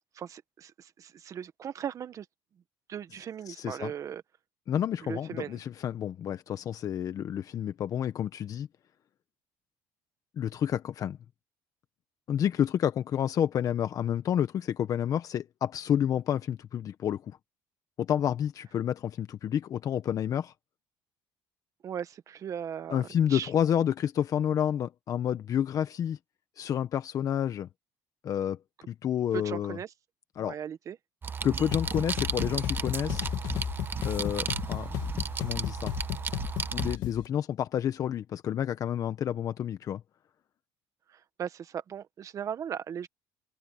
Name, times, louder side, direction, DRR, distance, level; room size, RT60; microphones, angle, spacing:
voice 1, 0.1-2.2 2.9-4.2 5.0-5.6 21.8-23.0 23.3-23.5 29.3-29.9 30.4-31.0 41.1-43.1, right 8 dB, 45° right, 1.6 m, -38 dB
voice 2, 3.5-3.9 4.7-8.7 10.4-11.2 12.3-17.4 18.0-20.5 22.9-26.2 26.6-27.7 28.2-28.6 28.9-29.8 30.4-30.6 31.4-33.3 34.0-35.0 35.4-35.9 36.7-40.0, left 9 dB, 50° left, 1.2 m, -29 dB
sound 1, 31.2-37.0, right 5 dB, 30° right, 1.1 m, -34 dB
sound 2, 31.7-37.3, left 15 dB, 70° left, 2.0 m, -35 dB
open air
cardioid pair, 100°, 8 cm